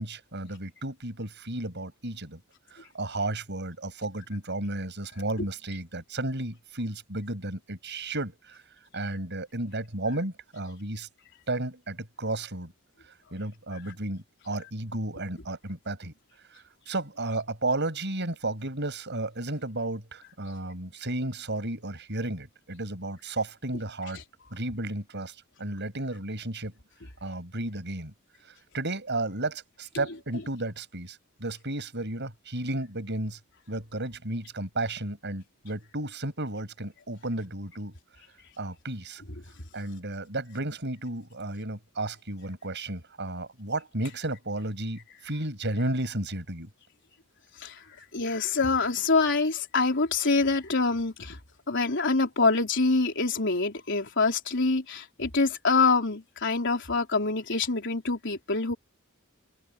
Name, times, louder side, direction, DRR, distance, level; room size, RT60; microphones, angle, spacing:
voice 1, 0.0-2.4 2.7-8.6 8.9-11.1 11.5-12.7 13.3-16.1 16.9-24.2 24.5-26.7 27.2-28.1 28.7-33.4 33.7-37.9 38.6-39.2 39.7-46.7, right 2 dB, 55° right, 7.6 m, -33 dB
voice 2, 47.6-51.4 51.7-58.7, left 3 dB, 60° left, 4.0 m, -25 dB
open air
head